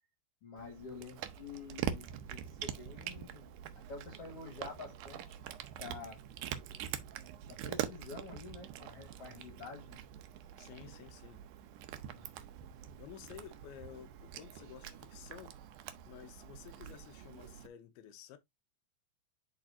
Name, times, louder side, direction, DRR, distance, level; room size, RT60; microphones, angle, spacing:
voice 1, 0.4-3.5 3.9-5.4 5.8-6.2 7.5-10.0 12.1-12.4, left 4 dB, 55° left, 1.8 m, -48 dB
Cat, 0.6-17.7, right 10 dB, 80° right, 1.8 m, -44 dB
voice 2, 10.6-11.4 13.0-15.5 16.0-18.4, left 10 dB, 90° left, 2.6 m, -52 dB
10.5 x 4.0 x 2.5 m
omnidirectional pair, 4.3 m